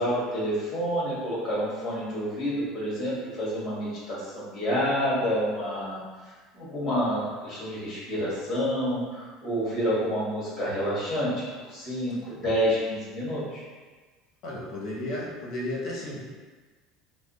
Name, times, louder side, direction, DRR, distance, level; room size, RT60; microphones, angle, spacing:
voice 1, 0.0-6.0 6.5-11.3 11.7-13.6, equal, 20° left, -8 dB, 1.3 m, -28 dB
voice 2, 14.4-16.2, left 1 dB, 40° left, -3 dB, 0.8 m, -33 dB
3.2 x 2.0 x 3.8 m, 1.4 s
cardioid pair, 170°, 0 cm